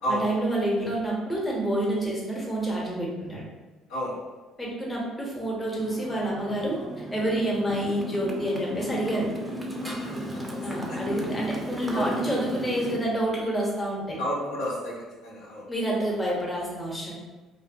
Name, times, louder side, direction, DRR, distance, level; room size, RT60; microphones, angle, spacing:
voice 1, 0.1-3.4 4.6-9.3 10.6-14.2 15.7-17.1, right 1 dB, 20° left, -3 dB, 0.8 m, -28 dB
Motorcycle, 5.8-13.0, equal, 15° right, 0.5 m, -35 dB
voice 2, 9.8-10.4 10.9-11.2 11.9-12.2 14.2-14.9 15.2-15.7, equal, 75° left, -6 dB, 0.6 m, -31 dB
2.5 x 2.1 x 2.6 m, 1.2 s
hypercardioid pair, 55°, 0 cm